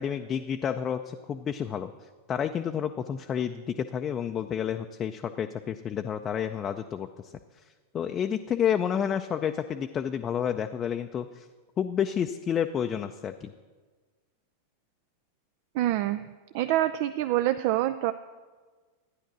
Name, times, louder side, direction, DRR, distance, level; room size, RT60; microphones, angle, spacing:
voice 1, 0.0-1.9 2.3-7.3 7.9-11.5 11.8-13.5, left 8 dB, 25° left, 6 dB, 0.5 m, -30 dB
voice 2, 15.7-16.2 16.5-18.1, right 14 dB, 45° right, 11 dB, 0.4 m, -26 dB
13.0 x 9.9 x 6.0 m, 1.4 s
figure-of-eight pair, 90°, 0 cm